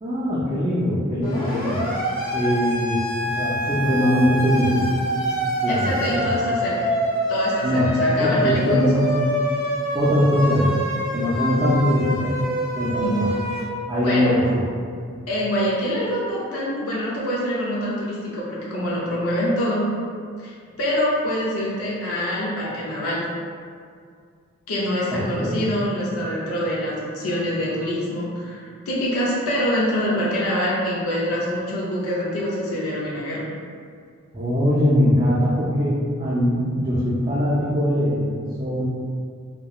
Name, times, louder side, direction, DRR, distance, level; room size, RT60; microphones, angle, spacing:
voice 1, 0.0-1.8 2.3-5.0 5.6-6.3 7.6-9.1 9.9-10.8 11.1-12.4 12.7-13.3 13.9-14.6 25.1-25.6 34.3-38.8, equal, 20° right, -10 dB, 0.3 m, -21 dB
Siren, 1.2-13.6, equal, 55° left, 1.0 m, -26 dB
voice 2, 5.7-6.9 7.3-9.1 13.0-13.2 14.0-14.5 15.3-19.9 20.4-23.3 24.7-33.5, equal, 80° left, -6 dB, 0.5 m, -25 dB
2.8 x 2.0 x 2.2 m, 2.2 s
head